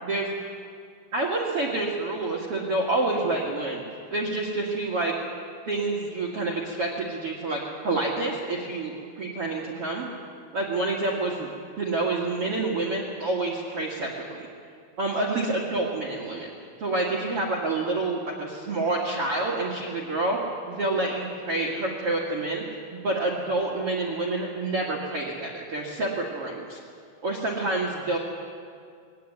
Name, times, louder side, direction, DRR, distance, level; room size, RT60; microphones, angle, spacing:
voice 1, 0.0-0.3 1.1-3.8 4.1-5.1 5.7-10.1 10.5-11.5 11.8-14.5 15.0-16.5 16.8-20.4 20.7-22.6 22.9-26.8 27.2-28.2, right 2 dB, 45° right, -2 dB, 2.2 m, -28 dB
20.5 x 17.5 x 9.5 m, 2.2 s
omnidirectional pair, 5.2 m